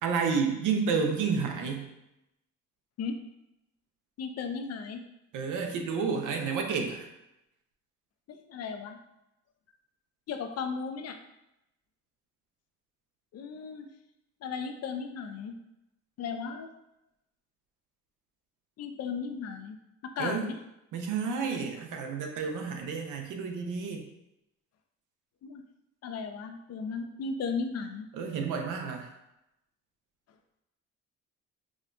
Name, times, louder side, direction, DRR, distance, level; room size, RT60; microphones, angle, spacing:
voice 1, 0.0-1.9 5.3-7.1 20.2-20.5 20.9-24.0 28.1-29.1, right 5 dB, 80° right, 3 dB, 0.7 m, -30 dB
voice 2, 4.2-5.0 8.3-9.0 10.3-11.2 13.3-13.9 14.4-15.6 16.2-16.7 18.8-19.8 20.0-20.6 25.4-25.6 26.0-28.1, left 5 dB, 55° left, 7 dB, 0.5 m, -35 dB
4.8 x 2.3 x 2.5 m, 0.88 s
cardioid pair, 90°, 30 cm